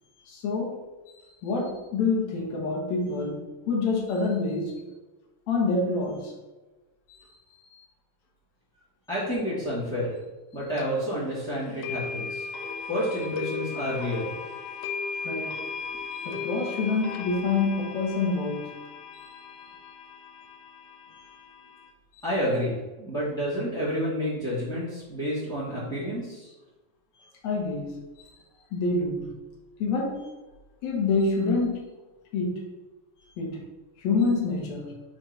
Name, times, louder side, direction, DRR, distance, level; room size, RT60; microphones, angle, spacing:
voice 1, 0.3-4.8 5.5-6.3 7.1-7.2 7.7-7.8 15.2-15.6 16.1-18.7 19.1-19.3 21.2-21.3 27.2-27.9 28.2-28.3 28.7-29.3 29.8-30.3 30.8-31.9 32.3-32.6 33.4-33.6 34.0-34.9, left 3 dB, 60° left, -1 dB, 2.4 m, -27 dB
voice 2, 9.1-10.1 10.5-12.4 12.9-14.3 22.2-26.5, equal, 5° left, -11 dB, 0.8 m, -29 dB
sound 1, 10.8-10.9 11.8-21.9, left 5 dB, 80° left, 2.2 m, -37 dB
6.2 x 3.1 x 5.4 m, 1.2 s
omnidirectional pair, 3.9 m